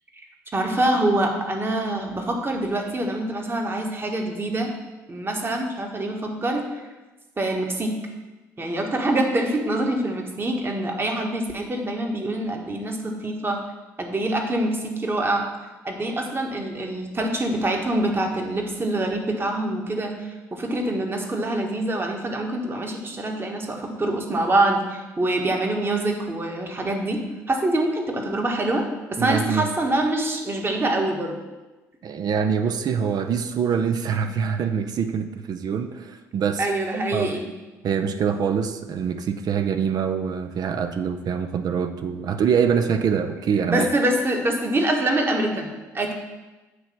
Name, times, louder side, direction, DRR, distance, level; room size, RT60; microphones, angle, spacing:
voice 1, 0.5-4.7 5.1-6.8 7.4-8.0 8.6-13.6 14.0-15.5 15.8-28.8 29.1-31.4 36.6-37.5 43.7-46.1, right 1 dB, 25° right, 2 dB, 1.4 m, -25 dB
voice 2, 29.2-29.7 32.0-36.7 37.1-37.4 37.8-43.9, right 7 dB, 50° right, 8 dB, 0.5 m, -24 dB
8.1 x 3.2 x 6.1 m, 1.2 s
hypercardioid pair, 55°, 8 cm